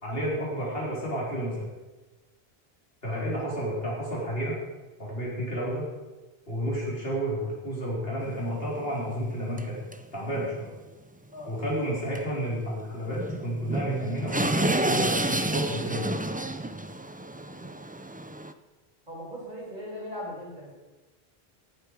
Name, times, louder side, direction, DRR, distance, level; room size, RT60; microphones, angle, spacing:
voice 1, 0.0-1.7 3.0-4.6 5.0-5.8 6.5-9.7 10.1-10.7 11.5-16.1, equal, 70° left, -5 dB, 4.5 m, -31 dB
sound 1, 8.2-8.3 8.8-8.9 9.6-9.7 9.9-10.0 10.3-10.5 12.2-12.3 12.5-12.6 13.2-18.5, right 1 dB, 10° right, 0.5 m, -29 dB
voice 2, 19.1-20.7, left 1 dB, 50° right, -4 dB, 4.9 m, -39 dB
17.5 x 8.0 x 5.0 m, 1.2 s
omnidirectional pair, 1.0 m